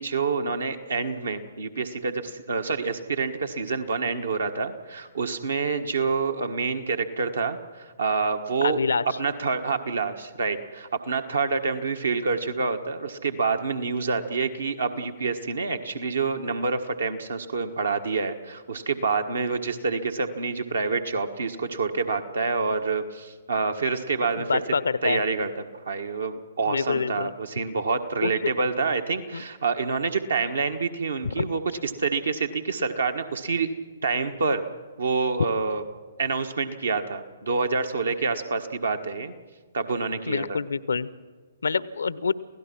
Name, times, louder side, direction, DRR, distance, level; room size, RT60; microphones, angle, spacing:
voice 1, 0.0-8.8 9.2-24.6 25.0-25.5 25.8-33.7 34.0-34.6 35.0-35.8 36.2-39.3 39.7-40.6, right 4 dB, 65° right, 7 dB, 1.4 m, -27 dB
voice 2, 8.6-9.0 24.4-25.2 26.7-27.3 28.2-28.5 29.3-29.4 31.2-31.5 40.3-41.1 41.6-42.3, left 5 dB, 65° left, 18 dB, 0.7 m, -26 dB
28.0 x 16.5 x 6.0 m, 1.4 s
figure-of-eight pair, 120°, 0 cm